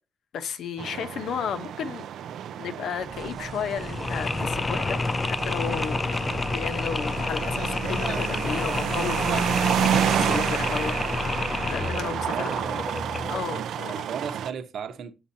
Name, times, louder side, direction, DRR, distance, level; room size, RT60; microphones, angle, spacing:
voice 1, 0.3-2.1 2.6-6.0 6.5-12.6 13.3-14.1, left 7 dB, 80° left, 0.8 m, -34 dB
sound 1, 0.8-14.5, right 9 dB, 85° right, 0.4 m, -30 dB
sound 2, 3.0-7.9, right 1 dB, 25° right, 1.0 m, -43 dB
Mechanisms, 3.8-13.5, left 3 dB, 25° left, 0.3 m, -29 dB
voice 2, 12.0-12.9 13.5-15.1, right 7 dB, 65° right, 0.9 m, -36 dB
8.6 x 6.9 x 2.7 m
wide cardioid pair, 145°, 0 cm